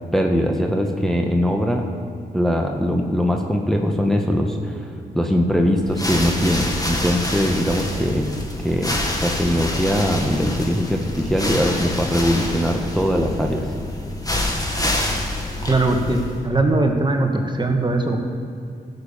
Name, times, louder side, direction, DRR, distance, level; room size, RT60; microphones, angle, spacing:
voice 1, 0.1-1.9 2.3-8.3 8.6-13.7, equal, ahead, 1 dB, 1.4 m, -21 dB
sound 1, 5.8-16.5, left 1 dB, 20° left, 2.4 m, -27 dB
voice 2, 15.7-18.2, right 2 dB, 25° right, 3 dB, 1.7 m, -20 dB
14.0 x 7.1 x 5.7 m, 2.5 s
supercardioid pair, 45°, 19 cm